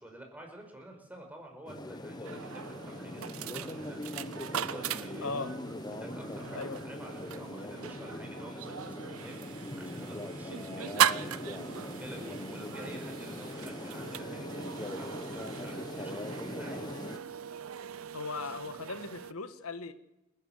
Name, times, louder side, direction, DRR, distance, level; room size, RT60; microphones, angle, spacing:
voice 1, 0.0-5.3 5.9-17.0 18.3-18.5, right 1 dB, 10° right, 2 dB, 5.1 m, -50 dB
sound 1, 1.7-17.2, left 1 dB, 20° left, 1.2 m, -41 dB
sound 2, 2.2-19.3, right 8 dB, 75° right, 0.7 m, -38 dB
voice 2, 5.2-5.5 6.5-6.8 18.1-19.9, left 4 dB, 90° left, 10 dB, 1.5 m, -38 dB
29.0 x 11.5 x 7.8 m, 0.95 s
head